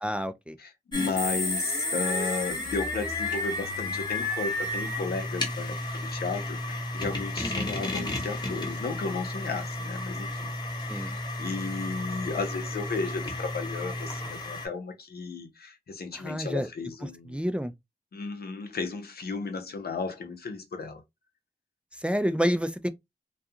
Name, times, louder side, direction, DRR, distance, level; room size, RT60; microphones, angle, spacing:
voice 1, 0.0-0.6 7.4-7.7 10.9-11.2 16.1-16.7 17.0-17.7 21.9-22.9, equal, 5° right, 0.3 m, -29 dB
voice 2, 0.6-10.5 10.9-17.4 18.1-21.0, left 4 dB, 85° left, 0.7 m, -34 dB
sound 1, 0.9-14.7, left 2 dB, 30° left, 0.9 m, -32 dB
2.4 x 2.3 x 2.7 m
wide cardioid pair, 90°, 16 cm